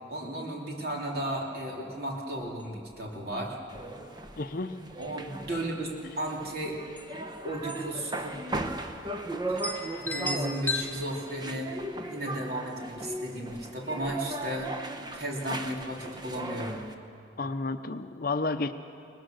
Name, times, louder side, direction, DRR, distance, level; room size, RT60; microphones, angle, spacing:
voice 1, 0.1-3.6 5.0-5.9 6.2-6.8 7.4-8.4 9.5-9.6 10.0-11.7 12.1-14.7 15.1-16.8, right 1 dB, 50° right, -2 dB, 3.2 m, -34 dB
sound 1, 2.5-2.6 2.9-3.0 3.4-3.8 4.4-4.6 4.9-5.5 6.6-6.7 7.0-7.1 7.7-8.0 8.3-8.4 9.0-9.1 9.6-10.8, left 2 dB, 10° left, 0.8 m, -34 dB
sound 2, 3.7-16.9, right 2 dB, 20° right, 0.9 m, -38 dB
voice 2, 4.4-4.8 17.4-18.7, left 3 dB, 50° left, 9 dB, 0.6 m, -31 dB
22.5 x 19.5 x 6.4 m, 2.8 s
head